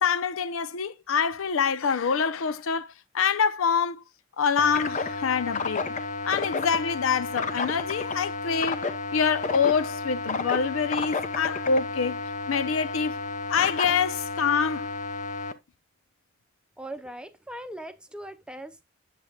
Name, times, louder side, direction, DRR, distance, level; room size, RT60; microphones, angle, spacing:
voice 1, 0.0-4.0 4.4-5.9 6.2-8.8 9.1-12.2 12.5-13.2 13.5-14.9, left 6 dB, 85° left, 0.6 m, -26 dB
sound 1, 4.6-15.5, left 4 dB, 40° left, 0.7 m, -31 dB
voice 2, 16.8-18.8, right 1 dB, 5° right, 0.6 m, -40 dB
8.5 x 7.3 x 2.2 m
head